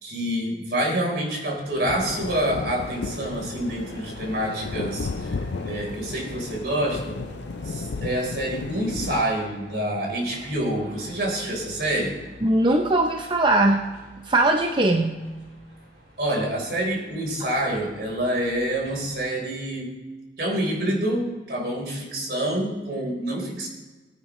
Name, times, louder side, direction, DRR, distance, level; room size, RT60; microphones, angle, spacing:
voice 1, 0.0-7.2 7.6-12.2 16.2-19.9 20.4-23.7, right 1 dB, 65° right, -1 dB, 3.9 m, -27 dB
sound 1, 1.5-19.2, right 1 dB, 80° right, 4.4 m, -46 dB
sound 2, 1.9-9.2, left 4 dB, 75° left, 0.5 m, -34 dB
voice 2, 12.4-13.8 14.3-15.2 17.4-17.5, right 2 dB, 25° right, 3 dB, 0.7 m, -20 dB
19.0 x 9.3 x 3.1 m, 1.2 s
head